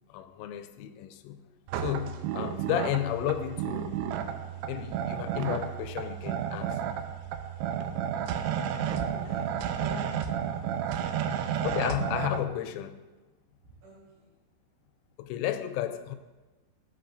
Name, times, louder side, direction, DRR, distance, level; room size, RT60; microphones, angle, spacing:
voice 1, 0.1-1.4 1.8-3.9 4.7-6.8 11.6-13.0 15.2-16.2, left 11 dB, 90° left, 3.0 m, -32 dB
sound 1, 1.7-12.4, right 9 dB, 90° right, 2.4 m, -32 dB
voice 2, 8.4-9.5 9.8-10.1 10.4-10.6 10.9-11.4 13.6-14.3, equal, 65° right, 6.1 m, -47 dB
16.5 x 10.0 x 2.6 m
omnidirectional pair, 5.4 m